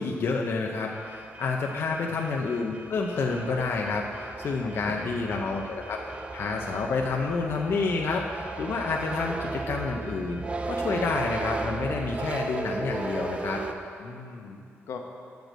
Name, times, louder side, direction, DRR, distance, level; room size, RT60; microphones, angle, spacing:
voice 1, 0.0-13.6, left 4 dB, 55° left, 0 dB, 0.6 m, -29 dB
sound 1, 0.9-13.7, right 3 dB, 25° right, 0.5 m, -36 dB
voice 2, 1.7-2.2 4.6-5.2 14.0-14.6 14.9-15.0, left 5 dB, 90° left, 2 dB, 1.1 m, -41 dB
9.1 x 5.1 x 7.6 m, 2.3 s
wide cardioid pair, 145°, 5 cm